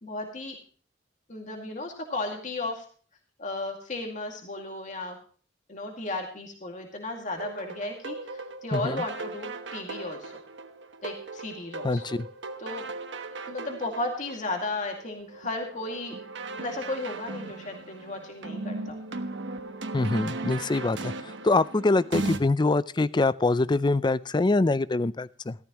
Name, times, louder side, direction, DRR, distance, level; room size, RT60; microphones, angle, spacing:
voice 1, 0.0-0.6 1.3-2.9 3.4-5.2 5.7-10.4 11.0-12.0 12.6-12.9 13.5-16.2 16.6-19.0, left 2 dB, 45° left, 2 dB, 2.2 m, -34 dB
sound 1, 7.4-22.4, right 3 dB, 75° right, 1.2 m, -37 dB
voice 2, 8.7-9.0 11.8-12.3 19.9-25.6, left 2 dB, 25° left, 17 dB, 0.5 m, -24 dB
15.0 x 13.5 x 3.0 m, 0.41 s
head